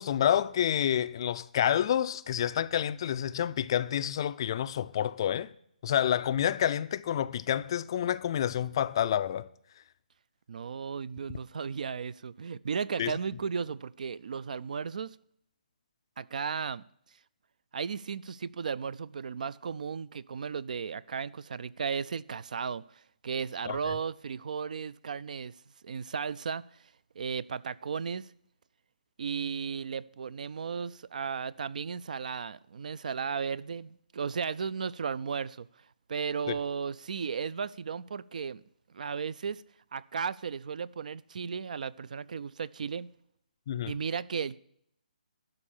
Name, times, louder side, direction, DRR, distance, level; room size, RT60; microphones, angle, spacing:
voice 1, 0.0-5.5 5.8-9.5 13.0-13.1 23.7-23.8 36.5-36.6 43.7-43.9, left 10 dB, 30° left, 0.3 m, -28 dB
voice 2, 10.5-15.2 16.2-16.8 17.7-25.5 25.8-26.6 27.2-28.3 29.2-35.7 36.1-38.6 38.9-39.6 39.9-43.1 43.9-44.6, right 6 dB, 55° right, 0.4 m, -35 dB
12.0 x 5.4 x 8.5 m
hypercardioid pair, 165°, 5 cm